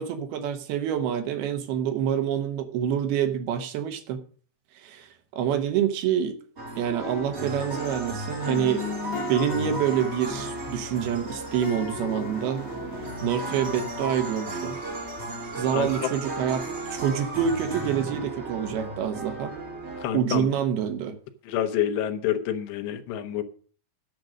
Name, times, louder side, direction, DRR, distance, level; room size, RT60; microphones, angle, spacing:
voice 1, 0.0-4.2 4.8-6.4 6.8-9.0 9.3-12.7 13.2-14.8 15.6-16.6 16.9-19.5 20.1-21.1, right 9 dB, 75° right, 8 dB, 2.7 m, -27 dB
sound 1, 6.6-20.1, right 2 dB, 25° right, 1.7 m, -35 dB
sound 2, 8.5-15.2, left 7 dB, 60° left, 2.4 m, -38 dB
voice 2, 20.0-20.5 21.4-23.4, left 10 dB, 80° left, 7 dB, 3.2 m, -28 dB
10.5 x 7.7 x 6.3 m, 0.43 s
omnidirectional pair, 5.0 m